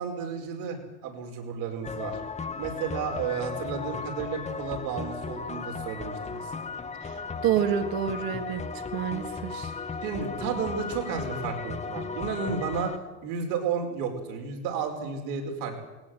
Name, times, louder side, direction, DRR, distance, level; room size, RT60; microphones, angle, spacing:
voice 1, 0.0-2.2 2.6-6.5 9.5-9.7 10.0-12.9 13.2-15.8, right 6 dB, 75° right, 3 dB, 5.2 m, -32 dB
sound 1, 1.8-13.0, left 5 dB, 15° left, 1.1 m, -36 dB
voice 2, 7.0-9.6, right 9 dB, 50° right, 7 dB, 2.0 m, -28 dB
18.5 x 18.0 x 7.9 m, 1.2 s
supercardioid pair, 120°, 46 cm